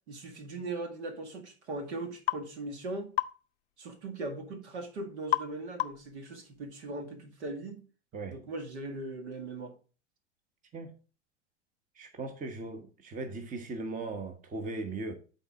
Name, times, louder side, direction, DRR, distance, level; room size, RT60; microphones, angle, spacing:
voice 1, 0.1-3.1 3.8-7.8 8.3-9.7, right 2 dB, 70° right, 2.0 m, -39 dB
sound 1, 2.3-2.5 3.2-3.4 5.3-5.5 5.8-6.1, left 16 dB, 65° left, 0.6 m, -29 dB
voice 2, 12.0-15.1, right 3 dB, 20° right, 1.1 m, -38 dB
11.0 x 4.2 x 3.7 m
hypercardioid pair, 90°, 35 cm